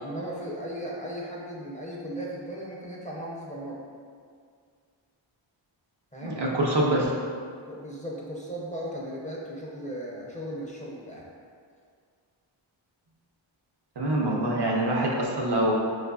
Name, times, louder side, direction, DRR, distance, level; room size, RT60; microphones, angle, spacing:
voice 1, 0.0-3.8 6.1-6.4 7.6-11.3, equal, 15° left, -4 dB, 0.5 m, -36 dB
voice 2, 6.2-7.1 14.0-15.7, right 1 dB, 60° right, -2 dB, 0.7 m, -25 dB
4.7 x 2.5 x 2.3 m, 2.1 s
wide cardioid pair, 65°, 47 cm